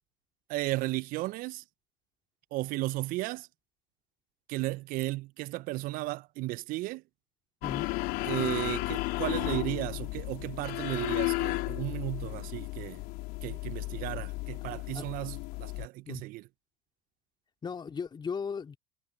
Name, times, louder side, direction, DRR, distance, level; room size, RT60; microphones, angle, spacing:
voice 1, 0.5-1.6 2.5-3.5 4.5-7.0 8.2-13.0 13.4-16.5, right 19 dB, 50° right, 1.3 m, -34 dB
sound 1, 7.6-15.9, left 23 dB, 55° left, 4.1 m, -34 dB
voice 2, 17.6-18.8, left 6 dB, 25° left, 3.9 m, -36 dB
hypercardioid pair, 80°, 19 cm